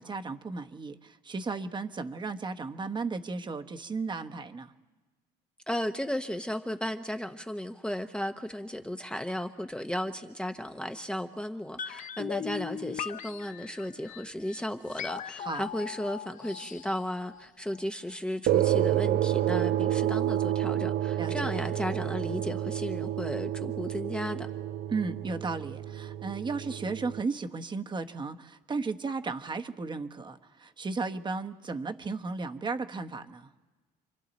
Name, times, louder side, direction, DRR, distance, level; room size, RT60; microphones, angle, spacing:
voice 1, 0.0-4.7 15.4-15.6 21.2-21.5 24.9-33.5, right 4 dB, 25° right, 7 dB, 1.0 m, -35 dB
voice 2, 5.7-24.5, equal, 5° left, 6 dB, 0.8 m, -35 dB
sound 1, 11.8-17.8 18.1-18.2, left 9 dB, 50° left, 0.8 m, -39 dB
sound 2, 18.5-27.2, right 12 dB, 65° right, 0.6 m, -29 dB
28.5 x 24.0 x 4.1 m, 1.3 s
cardioid pair, 110°, 17 cm